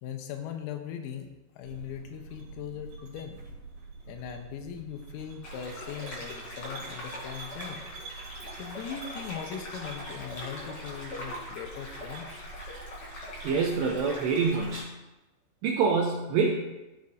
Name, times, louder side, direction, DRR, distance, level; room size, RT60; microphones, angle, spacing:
voice 1, 0.0-1.3 1.6-3.4 4.1-7.9 8.6-12.4, left 9 dB, 85° left, 5 dB, 3.5 m, -40 dB
sound 1, 1.6-14.0, right 4 dB, 55° right, 4.4 m, -47 dB
sound 2, 5.4-14.8, left 1 dB, 35° left, 3.1 m, -41 dB
voice 2, 13.4-14.9 15.6-16.6, right 5 dB, 85° right, 0 dB, 2.5 m, -26 dB
14.0 x 8.8 x 2.6 m, 1.0 s
omnidirectional pair, 6.0 m